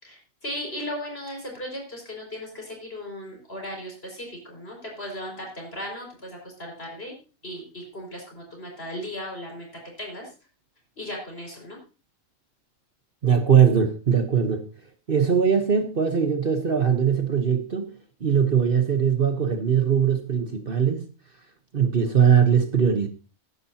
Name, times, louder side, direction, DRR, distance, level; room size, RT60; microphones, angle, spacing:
voice 1, 0.0-7.1 7.4-9.7 10.0-10.3 11.0-11.8, equal, 45° left, 5.7 m, -36 dB
voice 2, 13.2-14.7 15.1-17.9 18.2-21.1 21.7-23.1, right 7 dB, 45° right, 1.2 m, -21 dB
15.5 x 11.0 x 2.8 m
omnidirectional pair, 1.4 m